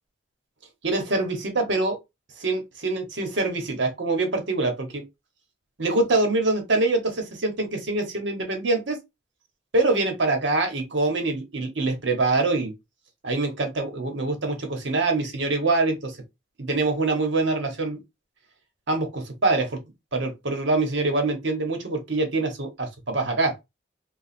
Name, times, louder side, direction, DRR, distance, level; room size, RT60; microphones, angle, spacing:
voice 1, 0.8-2.0 2.4-5.0 5.8-9.0 9.7-12.7 13.2-16.2 16.6-18.0 18.9-19.8 20.1-23.5, right 2 dB, 65° right, 1.1 m, -24 dB
3.0 x 2.4 x 4.2 m
head